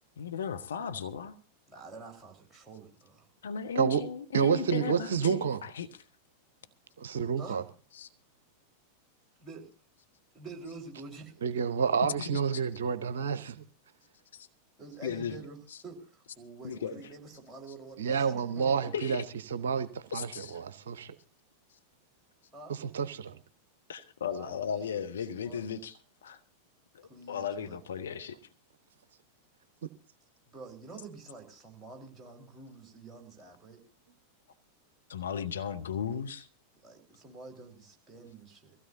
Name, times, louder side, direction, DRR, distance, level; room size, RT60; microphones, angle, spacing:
voice 1, 0.2-1.4 3.4-5.9 7.9-8.1 12.2-12.6 14.3-14.5 15.0-15.4 16.6-17.1 18.9-19.2 20.1-20.6 23.9-26.4 26.9-28.4 35.1-36.5, left 7 dB, 65° left, 0.9 m, -36 dB
voice 2, 1.7-3.3 7.4-7.6 9.4-9.7 10.3-11.4 14.8-15.6 15.8-18.9 22.5-22.8 24.3-25.8 27.0-27.8 30.5-33.8 36.8-38.8, right 3 dB, 10° right, 4.2 m, -48 dB
voice 3, 4.3-5.6 7.0-7.6 11.4-13.6 18.0-19.2 19.5-20.3 20.5-21.1 22.7-23.4, right 7 dB, 60° right, 0.7 m, -29 dB
23.5 x 16.0 x 2.7 m
figure-of-eight pair, 90°, 0 cm